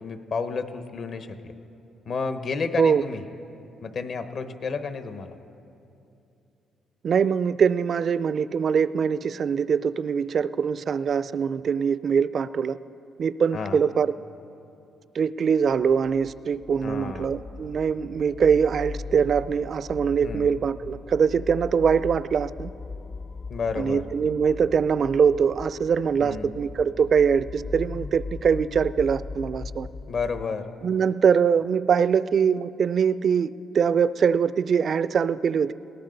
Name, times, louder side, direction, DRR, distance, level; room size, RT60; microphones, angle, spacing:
voice 1, 0.0-1.5 2.1-3.2 3.8-5.3 13.5-13.8 16.8-17.4 20.2-20.5 23.5-24.0 26.2-26.5 30.1-30.7, left 4 dB, 55° left, 9 dB, 1.0 m, -31 dB
voice 2, 7.0-12.8 13.2-14.1 15.1-22.7 23.8-29.9 30.8-35.7, right 6 dB, 55° right, 16 dB, 0.4 m, -23 dB
sound 1, 15.8-30.5, left 3 dB, 30° left, 0.3 m, -39 dB
20.0 x 18.0 x 3.9 m, 2.7 s
cardioid pair, 90°, 0 cm